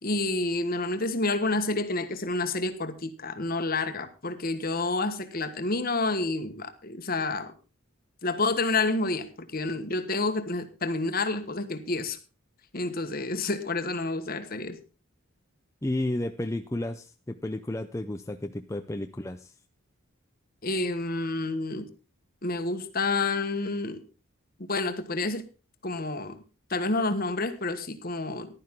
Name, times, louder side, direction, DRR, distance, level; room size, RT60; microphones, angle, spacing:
voice 1, 0.0-7.5 8.2-12.2 12.7-14.8 20.6-21.9 22.4-24.0 24.7-25.4 25.8-26.4 26.7-28.5, left 3 dB, 40° left, 1.4 m, -29 dB
voice 2, 15.8-19.5, left 1 dB, 15° left, 0.5 m, -32 dB
15.0 x 11.5 x 3.7 m
head